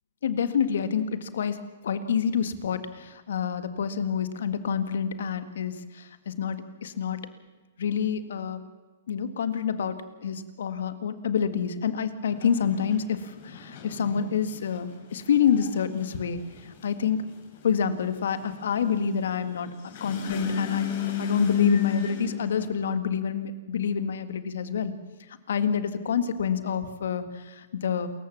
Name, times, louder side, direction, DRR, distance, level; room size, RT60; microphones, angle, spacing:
voice 1, 0.2-7.3 7.8-8.6 9.1-17.2 17.6-19.7 20.0-24.9 25.5-28.1, left 7 dB, 70° left, 11 dB, 1.8 m, -27 dB
sound 1, 12.3-22.7, left 7 dB, 55° left, 5.6 m, -34 dB
28.0 x 15.0 x 7.3 m, 1.3 s
hypercardioid pair, 120°, 0 cm